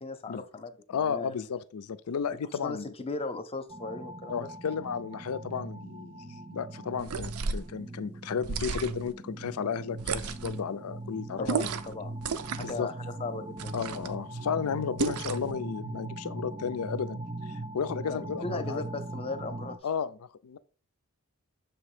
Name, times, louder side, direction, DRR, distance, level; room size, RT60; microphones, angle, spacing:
voice 1, 0.0-1.3 2.6-4.5 11.4-12.2 12.6-13.7 18.1-19.8, left 3 dB, 25° left, 0.6 m, -37 dB
voice 2, 0.9-2.9 4.3-11.7 12.6-12.9 13.7-17.2 17.5-18.8 19.8-20.6, left 6 dB, 80° left, 0.4 m, -33 dB
sound 1, 3.7-19.8, right 2 dB, 20° right, 0.3 m, -40 dB
sound 2, 7.0-7.7 8.4-9.1 10.0-10.6 11.5-11.9 12.2-12.8 13.6-14.2 15.0-15.5, right 5 dB, 80° right, 0.5 m, -33 dB
6.8 x 2.9 x 4.9 m
head